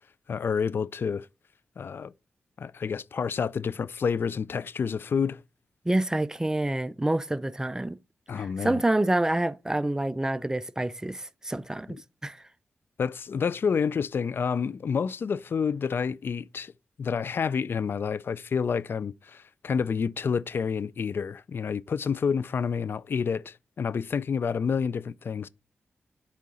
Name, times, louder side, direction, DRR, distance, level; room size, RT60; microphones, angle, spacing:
voice 1, 0.3-1.3 1.8-2.1 2.6-5.4 8.3-8.8 13.0-16.7 17.0-25.5, left 6 dB, 60° left, 0.3 m, -29 dB
voice 2, 5.9-8.0 8.3-11.9 12.2-12.4, right 1 dB, 15° right, 0.4 m, -27 dB
8.2 x 3.7 x 4.2 m
cardioid pair, 65°, 4 cm